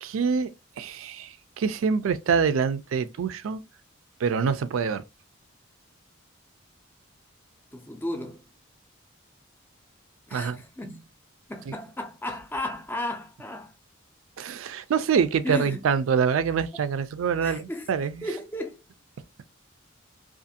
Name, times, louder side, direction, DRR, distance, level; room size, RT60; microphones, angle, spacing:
voice 1, 0.0-0.5 0.8-3.6 4.2-5.0 10.3-10.6 11.7-11.8 14.4-18.2, right 6 dB, 80° right, 0.4 m, -25 dB
voice 2, 7.7-8.4 10.3-11.0 11.5-13.7 15.4-15.8 17.4-17.9 18.2-18.8, left 1 dB, 10° left, 0.4 m, -34 dB
2.5 x 2.4 x 2.6 m
head